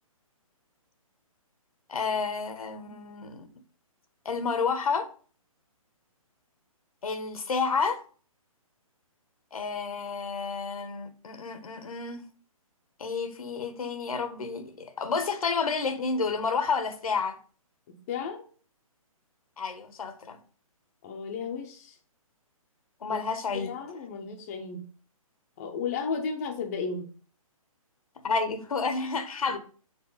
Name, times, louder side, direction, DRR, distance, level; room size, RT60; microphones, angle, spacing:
voice 1, 1.9-3.5 4.2-5.1 7.0-8.0 9.5-12.3 13.0-17.4 19.6-20.4 23.0-23.7 28.2-29.6, left 5 dB, 80° left, 1.2 m, -30 dB
voice 2, 17.9-18.4 21.0-22.0 23.1-23.2 23.5-24.9 25.6-27.1 29.5-29.6, left 5 dB, 25° left, 0.7 m, -34 dB
4.7 x 4.2 x 5.5 m
hypercardioid pair, 160°, 18 cm